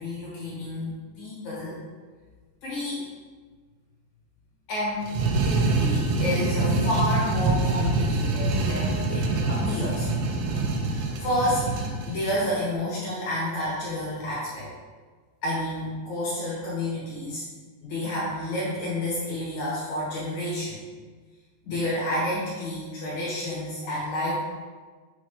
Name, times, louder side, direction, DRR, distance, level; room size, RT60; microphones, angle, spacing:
voice 1, 0.0-1.8 2.6-3.0 4.7-5.1 5.4-10.1 10.8-11.7 12.1-14.7 15.4-17.4 17.8-20.8 21.6-24.3, left 1 dB, 60° left, -7 dB, 2.1 m, -30 dB
sound 1, 5.0-12.4, right 3 dB, 85° right, 2.7 m, -25 dB
7.0 x 3.0 x 4.9 m, 1.4 s
omnidirectional pair, 5.0 m